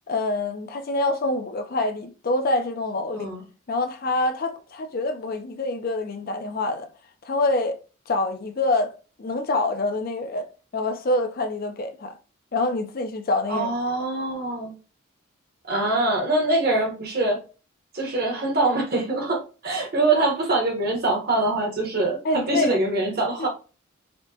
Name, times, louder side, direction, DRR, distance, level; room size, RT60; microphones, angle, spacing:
voice 1, 0.1-3.3 3.7-6.9 7.2-7.8 8.1-8.9 9.2-10.5 10.7-12.2 12.5-13.7 22.2-22.8 23.4-23.5, left 2 dB, 45° left, 0.4 m, -26 dB
voice 2, 13.5-14.7 15.7-17.4 17.9-23.5, right 2 dB, 45° right, 1.0 m, -24 dB
4.3 x 2.1 x 2.7 m
head